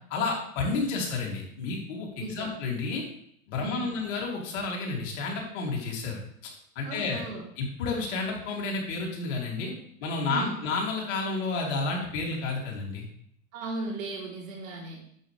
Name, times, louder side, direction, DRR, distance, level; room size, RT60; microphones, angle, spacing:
voice 1, 0.1-3.0 3.5-7.2 7.6-9.7 10.0-13.1, left 3 dB, 60° left, -1 dB, 2.9 m, -31 dB
voice 2, 2.2-2.6 3.6-3.9 6.8-7.5 10.3-10.7 13.5-15.0, right 2 dB, 75° right, -3 dB, 3.6 m, -37 dB
8.5 x 7.3 x 3.4 m, 0.68 s
hypercardioid pair, 110°, 41 cm